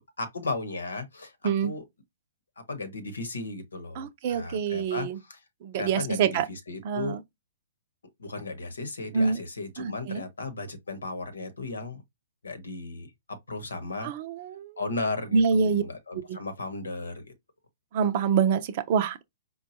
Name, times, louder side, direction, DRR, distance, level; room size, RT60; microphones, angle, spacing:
voice 1, 0.0-1.3 1.6-1.8 2.7-5.4 5.7-7.2 8.2-12.0 12.4-13.1 13.5-14.1 14.8-17.2, left 3 dB, 85° left, 1.0 m, -35 dB
voice 2, 4.0-5.2 5.6-6.5 6.8-7.2 9.1-9.4 9.8-10.2 14.0-14.7 15.3-15.8 16.3-16.4 17.9-19.2, right 6 dB, 45° right, 0.6 m, -26 dB
4.4 x 2.3 x 2.8 m
hypercardioid pair, 125°, 0 cm